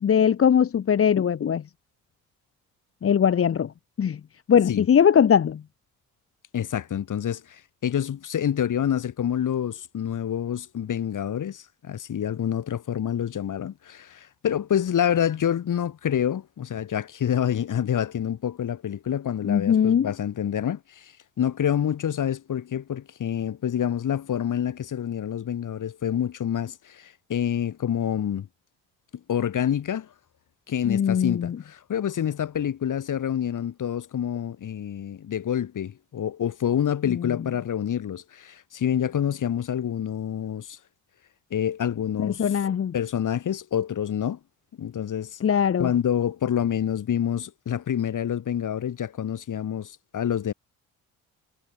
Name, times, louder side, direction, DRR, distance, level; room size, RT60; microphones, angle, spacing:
voice 1, 0.0-1.6 3.0-3.7 4.0-4.2 4.5-5.6 19.4-20.1 30.9-31.6 37.1-37.3 42.2-42.9 45.4-45.9, left 8 dB, 35° left, 1.0 m, -21 dB
voice 2, 6.5-28.5 29.3-30.1 30.7-40.8 41.5-42.4 42.9-44.4 44.8-45.4 45.8-50.5, left 9 dB, 50° left, 2.7 m, -27 dB
hypercardioid pair, 55°, 39 cm